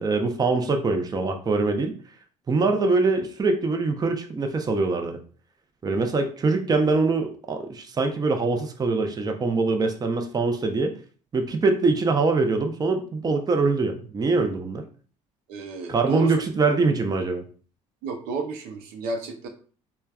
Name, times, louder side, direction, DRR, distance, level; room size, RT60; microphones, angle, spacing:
voice 1, 0.0-1.9 2.5-5.2 5.8-10.9 11.3-14.8 15.9-17.4, right 3 dB, 25° right, 5 dB, 0.5 m, -23 dB
voice 2, 15.5-16.3 18.0-19.5, right 3 dB, 75° right, 4 dB, 0.6 m, -31 dB
3.3 x 2.1 x 2.3 m, 0.42 s
hypercardioid pair, 70°, 16 cm